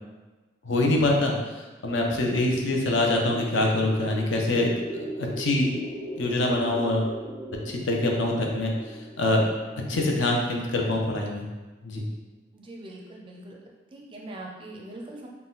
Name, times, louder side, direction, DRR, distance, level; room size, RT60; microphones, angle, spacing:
voice 1, 0.6-1.3 1.8-5.7 6.2-7.1 7.7-9.5 9.9-11.5 11.8-12.0, left 2 dB, 70° left, 0 dB, 0.6 m, -24 dB
sound 1, 2.5-10.6, right 1 dB, 30° left, 1.4 m, -39 dB
voice 2, 12.5-13.6 13.9-15.3, right 1 dB, 25° right, -1 dB, 0.4 m, -41 dB
4.0 x 2.2 x 3.8 m, 1.2 s
head